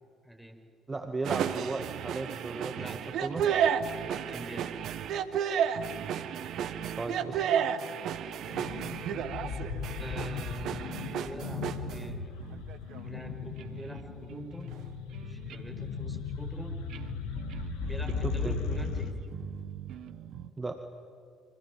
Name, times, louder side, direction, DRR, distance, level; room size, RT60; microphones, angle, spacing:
voice 1, 0.2-0.6 2.7-3.0 4.1-4.7 10.0-12.2 13.0-14.7 15.2-16.7 17.8-19.1, right 1 dB, ahead, 4 dB, 5.3 m, -45 dB
voice 2, 0.9-2.7 3.2-3.5 7.0-7.4 18.2-18.6 20.6-20.8, right 3 dB, 25° right, 6 dB, 2.0 m, -35 dB
sound 1, 1.2-13.2 13.6-14.0 14.3-14.8 15.1-15.6 16.9-20.5, right 8 dB, 60° right, 1.2 m, -33 dB
sound 2, 8.5-19.1, left 5 dB, 70° left, 2.1 m, -37 dB
28.5 x 25.0 x 7.7 m, 2.3 s
hypercardioid pair, 50°, 0 cm